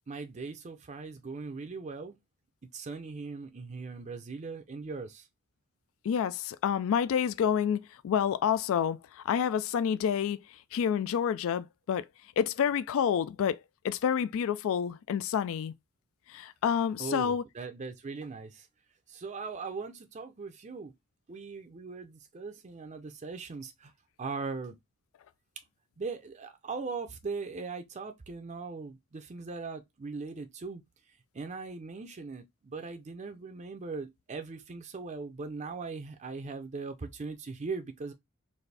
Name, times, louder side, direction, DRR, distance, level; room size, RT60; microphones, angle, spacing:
voice 1, 0.1-2.2 2.7-5.3 17.0-18.7 19.1-20.9 21.3-23.9 24.2-24.8 26.0-30.8 31.3-38.1, right 4 dB, 35° right, 0.5 m, -39 dB
voice 2, 6.0-10.4 10.7-12.0 12.4-13.6 13.8-15.7 16.3-17.4, left 8 dB, 65° left, 0.3 m, -28 dB
4.1 x 2.6 x 3.3 m
head